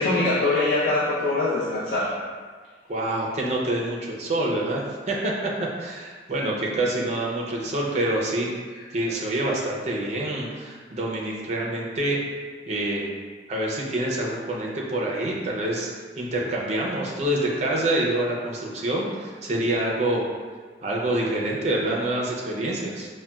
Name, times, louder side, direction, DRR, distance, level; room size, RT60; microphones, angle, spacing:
voice 1, 0.0-2.1, left 2 dB, 65° left, -10 dB, 0.6 m, -23 dB
voice 2, 2.9-5.5 5.8-8.5 8.9-12.2 12.7-13.1 13.5-15.9 16.2-20.2 20.8-23.1, right 1 dB, 40° right, -2 dB, 0.4 m, -26 dB
3.9 x 2.1 x 2.3 m, 1.5 s
head